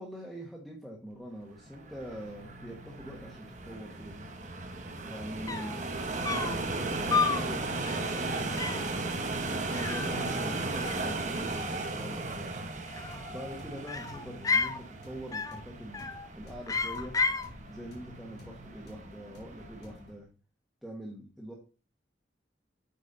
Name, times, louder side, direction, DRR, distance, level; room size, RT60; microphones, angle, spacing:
voice 1, 0.0-4.3 5.0-5.8 6.4-9.3 9.9-12.5 13.3-17.1 17.7-20.3 20.8-21.5, equal, ahead, -3 dB, 1.6 m, -44 dB
sound 1, 1.6-20.1, equal, 60° left, 3.4 m, -55 dB
sound 2, 1.7-20.0, right 2 dB, 40° right, 1.1 m, -36 dB
sound 3, 5.2-5.3 5.5-5.8 6.3-6.6 7.1-7.5 7.8-8.1 8.6-8.9 9.7-10.6 10.8-11.5 12.8-13.4 13.9-14.8 15.3-15.6 15.9-16.3 16.7-17.5, left 4 dB, 20° left, 0.5 m, -32 dB
8.2 x 4.7 x 5.5 m, 0.35 s
head